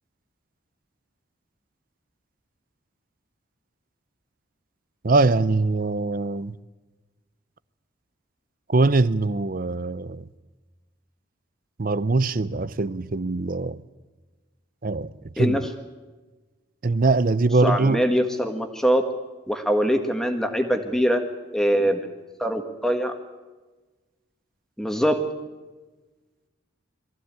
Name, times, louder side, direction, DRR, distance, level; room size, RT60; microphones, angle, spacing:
voice 1, 5.0-6.6 8.7-10.3 11.8-13.8 14.8-15.7 16.8-18.1, right 3 dB, 45° right, 0.6 m, -22 dB
voice 2, 17.6-19.0 19.5-21.2 21.5-22.0 22.4-23.1 24.8-25.2, equal, ahead, 1.6 m, -22 dB
22.5 x 15.0 x 8.7 m
head